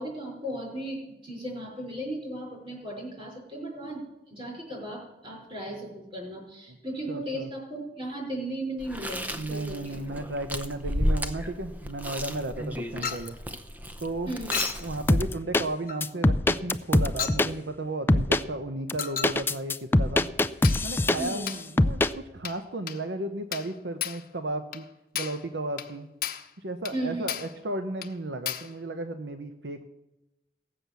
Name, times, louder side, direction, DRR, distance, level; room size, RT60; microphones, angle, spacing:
voice 1, 0.0-10.0 12.8-12.9 14.3-14.6 21.2-21.5 26.9-27.3, right 1 dB, 30° right, 0 dB, 5.4 m, -36 dB
voice 2, 7.1-7.5 9.3-13.4 14.0-14.3 14.8-20.3 20.8-24.9 25.1-26.1 26.6-29.8, right 2 dB, 80° right, 8 dB, 0.9 m, -34 dB
Chewing mastication, 8.8-15.3, equal, 10° right, 0.7 m, -33 dB
Chink clink, 13.0-13.3 14.5-14.9 15.9-16.1 17.2-17.5 19.0-19.4 20.6-20.9 21.5-21.7 22.5-22.6 22.9-23.0 23.5-23.7 24.0-24.3 24.7-24.9 25.2-25.4 25.8-25.9 26.2-26.5 26.9-27.0 27.3-27.6 28.0-28.1 28.5-28.7, left 9 dB, 55° left, 1.0 m, -33 dB
sound 1, 15.1-15.6 16.0-17.5 18.1-18.4 18.9-21.5 21.8-22.1, left 1 dB, 15° left, 0.4 m, -22 dB
17.5 x 7.8 x 6.9 m, 0.94 s
head